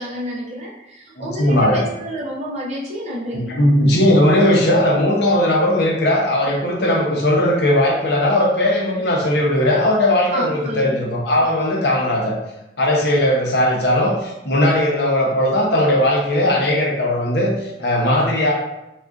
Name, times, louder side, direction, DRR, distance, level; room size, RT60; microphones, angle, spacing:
voice 1, 0.0-3.6 10.3-11.0, equal, 35° right, -4 dB, 0.6 m, -29 dB
voice 2, 1.2-1.8 3.3-12.3 12.8-18.5, left 1 dB, 70° left, -2 dB, 0.7 m, -18 dB
3.5 x 2.4 x 2.4 m, 0.94 s
head